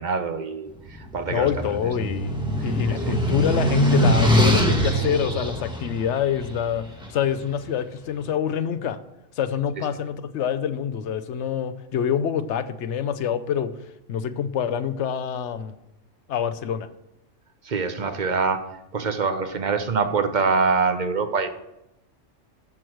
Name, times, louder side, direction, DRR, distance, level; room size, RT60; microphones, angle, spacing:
voice 1, 0.0-1.5 2.6-3.1 9.8-9.9 17.6-18.7 18.9-21.5, right 4 dB, 40° right, 7 dB, 0.9 m, -25 dB
sound 1, 0.9-7.2, equal, 5° right, 1.4 m, -23 dB
voice 2, 1.3-6.8 7.1-9.0 9.4-13.7 14.1-15.7 16.3-16.9, left 8 dB, 65° left, 12 dB, 0.9 m, -26 dB
13.5 x 4.6 x 6.2 m, 0.87 s
omnidirectional pair, 1.3 m